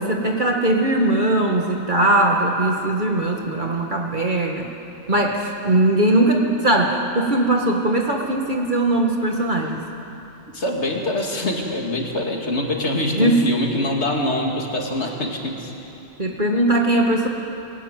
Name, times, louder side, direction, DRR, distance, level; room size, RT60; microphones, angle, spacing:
voice 1, 0.0-4.7 5.1-9.8 13.1-13.4 16.2-17.3, right 1 dB, 40° right, 0 dB, 1.7 m, -20 dB
voice 2, 10.5-15.7, left 1 dB, 60° left, 0 dB, 2.8 m, -24 dB
22.5 x 17.5 x 9.2 m, 2.9 s
omnidirectional pair, 1.3 m